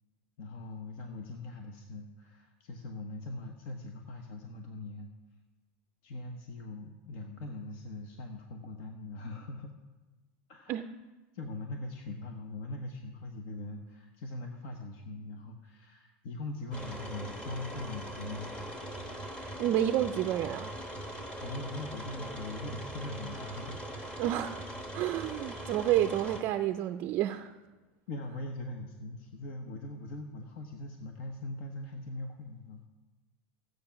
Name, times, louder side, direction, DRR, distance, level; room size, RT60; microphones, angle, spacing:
voice 1, 0.4-5.1 6.0-9.7 10.5-10.8 11.3-18.9 20.9-23.8 28.1-32.9, left 2 dB, 55° left, 4 dB, 1.1 m, -41 dB
sound 1, 16.7-26.4, right 1 dB, 15° left, 1.5 m, -41 dB
voice 2, 19.6-20.7 24.2-24.7 24.9-27.6, right 12 dB, 35° right, 8 dB, 0.4 m, -29 dB
15.5 x 8.0 x 5.9 m, 1.2 s
supercardioid pair, 160°, 6 cm